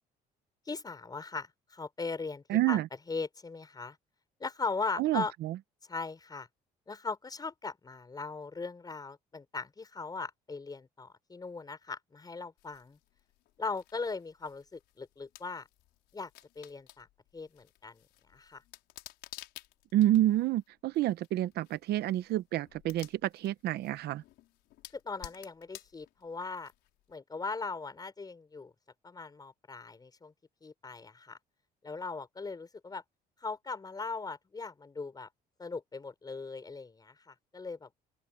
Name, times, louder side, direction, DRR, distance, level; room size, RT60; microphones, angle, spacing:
voice 1, 0.7-2.8 3.1-4.0 4.4-5.3 5.9-6.5 6.9-13.0 13.6-15.7 16.1-16.3 16.6-17.1 17.3-18.0 18.3-18.6 24.9-26.7 27.1-28.7 29.0-30.3 30.6-31.4 31.8-33.0 33.4-35.3 35.6-37.9, left 4 dB, 25° left, 4.5 m, -39 dB
voice 2, 2.5-2.9 5.0-5.6 19.9-24.2, right 14 dB, 75° right, 1.0 m, -28 dB
sound 1, 12.6-27.1, left 16 dB, 85° left, 5.5 m, -55 dB
open air
cardioid pair, 110°, 17 cm